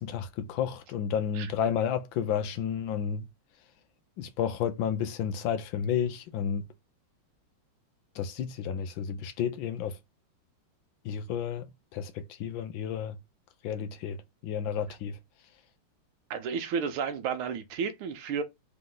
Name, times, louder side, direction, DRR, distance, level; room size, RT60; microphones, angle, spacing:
voice 1, 0.0-3.3 4.2-6.7 8.1-10.0 11.0-13.2 13.6-14.2 14.4-15.2, left 8 dB, 75° left, 1.3 m, -31 dB
voice 2, 16.3-18.4, right 6 dB, 85° right, 1.6 m, -32 dB
4.2 x 3.0 x 3.7 m
omnidirectional pair, 2.3 m